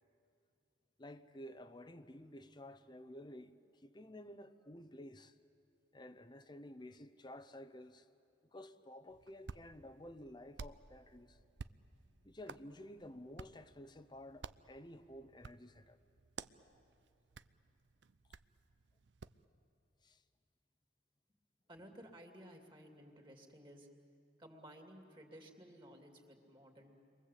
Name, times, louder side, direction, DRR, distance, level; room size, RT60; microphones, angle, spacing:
voice 1, 1.0-5.4 5.9-8.1 8.5-11.4 12.2-16.0 20.0-20.2, left 1 dB, 25° left, 0.8 m, -53 dB
Hands, 9.1-19.4, right 5 dB, 65° right, 0.6 m, -55 dB
voice 2, 21.7-23.9 24.4-27.0, equal, 25° right, 2.8 m, -56 dB
29.5 x 23.0 x 8.4 m
head